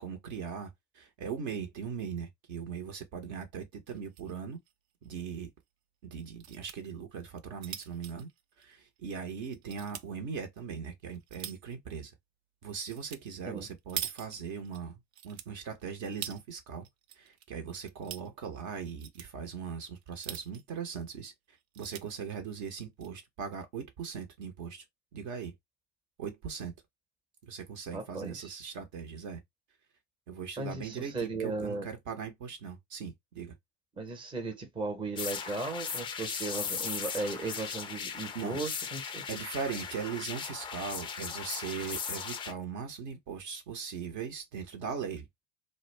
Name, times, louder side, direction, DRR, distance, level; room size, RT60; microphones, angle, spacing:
voice 1, 0.0-4.6 5.0-5.5 6.0-8.3 8.6-12.1 12.6-16.9 17.2-21.3 21.8-24.8 25.1-25.5 26.2-26.7 27.4-29.4 30.3-33.6 38.3-38.6 39.3-45.3, right 6 dB, 50° right, 0.8 m, -39 dB
sound 1, 3.9-4.3 4.7-4.8 5.0-5.1 6.1-6.8 7.3-9.1 9.5-10.1 10.7-11.7 12.9-13.2 13.5-14.8 15.1-16.4 16.8-17.4 17.7-18.3 18.8-19.3 20.0-20.7 21.2-21.3 21.6-22.0 22.8-23.1, right 11 dB, 70° right, 0.5 m, -43 dB
voice 2, 27.9-28.5 30.6-31.9 34.0-39.2, right 3 dB, 15° right, 0.8 m, -36 dB
sound 2, 35.2-42.5, left 6 dB, 15° left, 0.3 m, -38 dB
2.3 x 2.1 x 3.2 m
hypercardioid pair, 95°, 32 cm